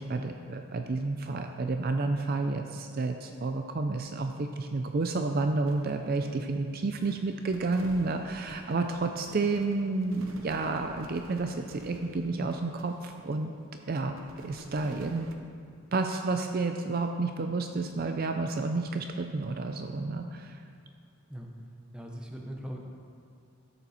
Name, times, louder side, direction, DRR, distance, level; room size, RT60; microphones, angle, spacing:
voice 1, 0.0-13.5 13.9-14.2 14.4-15.3 15.9-20.6, right 3 dB, 40° right, 5 dB, 0.4 m, -30 dB
sound 1, 5.7-6.8 7.0-13.7 14.2-15.3, right 1 dB, 65° right, 0.8 m, -50 dB
voice 2, 21.9-22.8, equal, 5° right, 0 dB, 0.8 m, -40 dB
13.0 x 6.9 x 4.2 m, 2.4 s
head